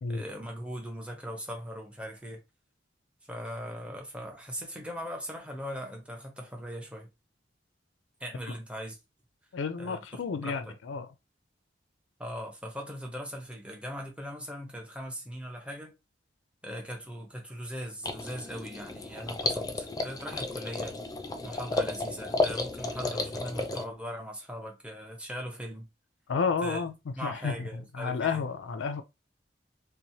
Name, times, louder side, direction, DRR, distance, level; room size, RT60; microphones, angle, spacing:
voice 1, 0.1-2.4 3.3-7.1 8.2-9.0 9.8-10.7 12.2-16.0 16.6-21.0 21.4-25.9 26.6-26.8 27.2-28.4, equal, 5° right, 0.7 m, -40 dB
voice 2, 9.5-11.1 26.3-29.0, left 5 dB, 90° left, 0.4 m, -31 dB
sound 1, 18.0-23.9, left 2 dB, 20° left, 0.3 m, -33 dB
2.9 x 2.1 x 2.7 m
head